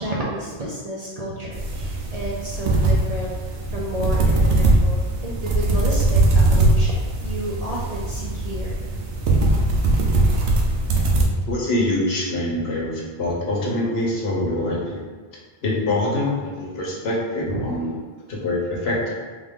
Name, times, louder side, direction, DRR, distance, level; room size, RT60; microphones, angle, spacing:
voice 1, 0.0-3.3 3.7-8.8 17.5-17.7, equal, 50° right, -6 dB, 0.5 m, -31 dB
sound 1, 1.5-11.2, right 2 dB, 85° right, 0.9 m, -20 dB
voice 2, 11.5-15.1 15.6-17.9 18.3-19.1, left 1 dB, 65° left, -4 dB, 1.1 m, -24 dB
3.8 x 2.5 x 3.5 m, 1.4 s
omnidirectional pair, 1.1 m